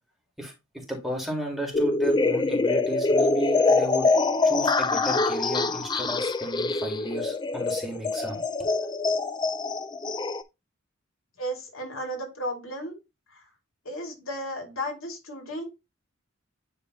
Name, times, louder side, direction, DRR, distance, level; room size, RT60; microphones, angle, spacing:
voice 1, 0.4-4.1 4.4-8.4 8.8-8.9, right 1 dB, ahead, 1.9 m, -34 dB
sound 1, 1.7-10.4, left 3 dB, 20° left, 0.3 m, -24 dB
voice 2, 11.4-13.0 13.3-13.4 13.8-15.6, equal, 75° left, 2.6 m, -34 dB
9.9 x 3.4 x 3.0 m
head